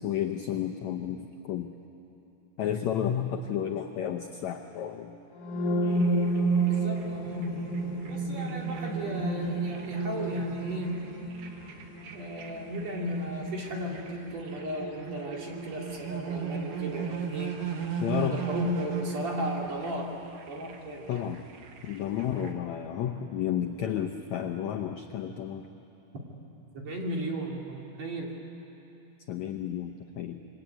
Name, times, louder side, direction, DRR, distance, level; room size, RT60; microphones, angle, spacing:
voice 1, 0.0-1.7 2.6-5.2 18.0-18.4 21.1-21.4 21.8-25.7 29.3-30.4, left 9 dB, 80° left, 4 dB, 1.6 m, -32 dB
sound 1, 5.3-13.2, right 3 dB, 65° left, 3.8 m, -31 dB
voice 2, 5.8-7.7 8.1-11.1 12.1-17.5 18.2-20.1 20.5-21.2 26.7-28.3, equal, 45° right, -1 dB, 3.9 m, -35 dB
sound 2, 5.9-22.5, right 6 dB, 65° right, 3.3 m, -37 dB
27.0 x 23.0 x 9.0 m, 3.0 s
omnidirectional pair, 4.4 m